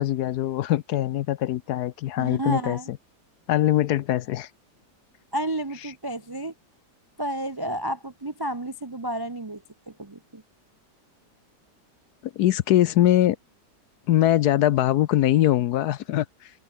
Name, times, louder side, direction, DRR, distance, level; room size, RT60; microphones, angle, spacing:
voice 1, 0.0-3.0 3.5-4.5 12.2-13.4 14.1-16.5, left 13 dB, 70° left, 1.1 m, -22 dB
voice 2, 2.2-2.9 5.3-6.5 7.2-10.4, right 1 dB, 30° right, 0.4 m, -31 dB
omnidirectional pair, 1.9 m